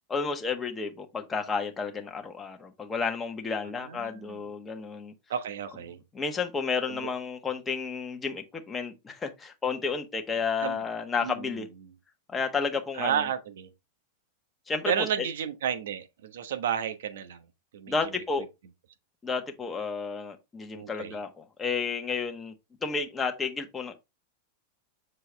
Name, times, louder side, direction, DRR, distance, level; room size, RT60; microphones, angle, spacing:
voice 1, 0.1-5.1 6.1-11.7 12.3-13.2 14.7-15.3 17.9-18.5 19.2-22.5 22.8-23.9, left 5 dB, 20° left, 1.3 m, -31 dB
voice 2, 3.8-4.4 5.3-6.0 6.9-7.1 10.6-10.8 11.2-11.9 12.9-13.7 14.9-17.4 17.7-17.9 20.7-21.2, right 9 dB, 70° right, 1.2 m, -32 dB
6.7 x 4.5 x 3.3 m
hypercardioid pair, 105°, 0 cm